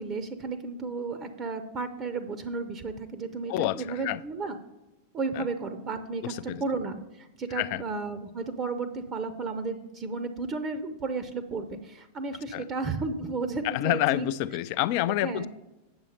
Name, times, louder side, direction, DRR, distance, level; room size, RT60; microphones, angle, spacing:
voice 1, 0.0-4.6 5.1-14.3 15.2-15.5, right 4 dB, 30° right, 0.7 m, -33 dB
voice 2, 3.5-4.2 5.4-5.5 6.2-6.6 7.5-7.8 12.5-12.6 13.6-15.5, left 15 dB, 45° left, 0.4 m, -28 dB
8.7 x 7.0 x 4.4 m
figure-of-eight pair, 90°, 0 cm